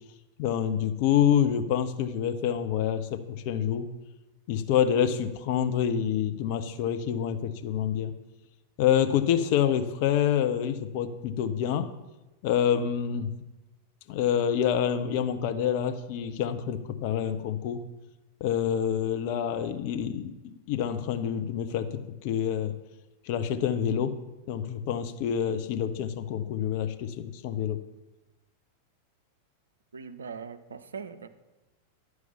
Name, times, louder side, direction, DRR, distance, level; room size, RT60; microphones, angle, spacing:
voice 1, 0.4-3.9 4.5-8.1 8.8-11.9 12.4-13.3 14.1-17.8 18.4-22.7 23.3-24.2 24.5-27.8, left 9 dB, 45° left, 8 dB, 0.7 m, -27 dB
voice 2, 29.9-31.3, right 6 dB, 70° right, 11 dB, 0.5 m, -40 dB
10.5 x 4.8 x 6.9 m, 1.1 s
figure-of-eight pair, 90°, 0 cm